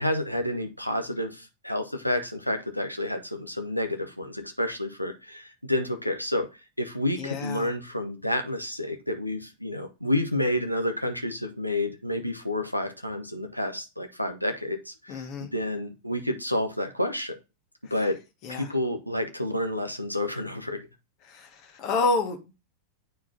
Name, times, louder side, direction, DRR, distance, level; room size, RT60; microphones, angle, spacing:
voice 1, 0.0-6.5 6.8-17.4 17.9-18.2 18.5-20.8, left 1 dB, 90° left, 1.0 m, -29 dB
voice 2, 7.2-7.7 15.1-15.5 17.8-18.1 18.4-18.7 21.2-22.5, left 3 dB, 40° left, 1.6 m, -29 dB
8.9 x 4.6 x 2.7 m
figure-of-eight pair, 90°, 0 cm